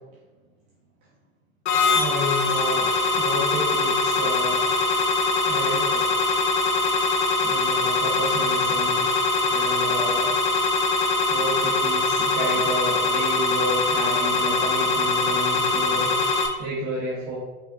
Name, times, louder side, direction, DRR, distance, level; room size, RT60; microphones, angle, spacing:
sound 1, 1.7-16.5, left 3 dB, 55° left, 0.8 m, -22 dB
voice 1, 1.9-4.7 5.5-6.0 7.4-9.2 9.5-10.3 11.3-17.4, right 1 dB, 60° right, -7 dB, 1.3 m, -31 dB
5.5 x 3.4 x 2.5 m, 1.2 s
hypercardioid pair, 95°, 40 cm